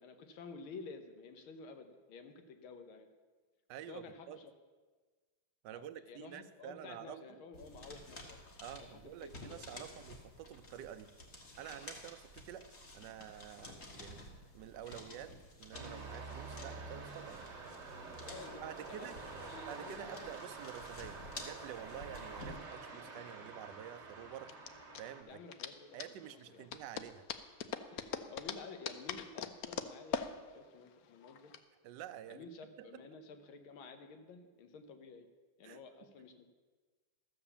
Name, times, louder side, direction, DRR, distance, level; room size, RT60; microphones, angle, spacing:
voice 1, 0.0-3.1 3.9-4.5 5.7-8.4 8.8-10.0 18.1-19.1 19.4-20.3 25.3-26.0 26.3-26.7 27.9-31.5 32.3-35.3 35.6-36.5, left 4 dB, 85° left, 7 dB, 1.9 m, -52 dB
voice 2, 3.7-4.4 5.6-7.4 8.6-11.1 11.6-14.3 14.5-17.4 18.6-19.2 19.7-24.6 25.0-25.4 25.9-27.3 31.8-32.5 32.8-33.0 35.6-35.8, right 10 dB, 70° right, 11 dB, 1.1 m, -49 dB
sound 1, 7.5-22.6, left 2 dB, 40° left, 1.8 m, -52 dB
sound 2, 15.7-25.2, right 4 dB, 40° right, 2.0 m, -48 dB
sound 3, 22.7-31.6, left 8 dB, 65° left, 0.9 m, -43 dB
13.5 x 7.1 x 7.1 m, 1.4 s
omnidirectional pair, 2.2 m